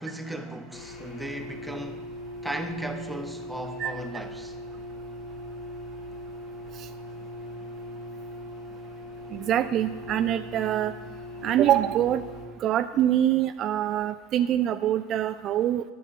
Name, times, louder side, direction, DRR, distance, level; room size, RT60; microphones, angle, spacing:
voice 1, 0.0-2.1 2.4-4.6, right 1 dB, 5° right, 1.1 m, -36 dB
sound 1, 0.7-12.5, equal, 55° left, 1.7 m, -40 dB
voice 2, 9.3-10.9 11.4-12.2 12.6-15.8, right 11 dB, 45° right, 0.3 m, -24 dB
10.5 x 5.7 x 6.9 m
hypercardioid pair, 80°, 0 cm